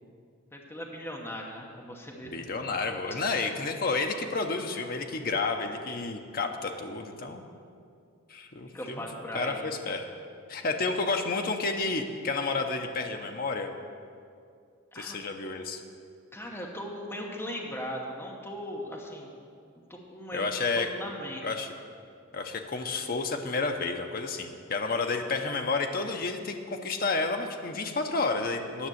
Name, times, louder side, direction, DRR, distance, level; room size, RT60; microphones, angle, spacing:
voice 1, 0.5-2.6 3.1-3.3 8.7-9.7 10.6-10.7 14.9-15.2 16.3-19.3 19.7-20.4 20.8-21.4, equal, 10° left, -1 dB, 1.0 m, -39 dB
voice 2, 2.2-7.4 8.3-9.1 9.3-10.1 10.5-13.7 14.9-15.8 20.3-20.9 21.4-21.7 22.3-28.9, left 3 dB, 45° left, 4 dB, 0.7 m, -30 dB
10.0 x 6.0 x 7.8 m, 2.4 s
head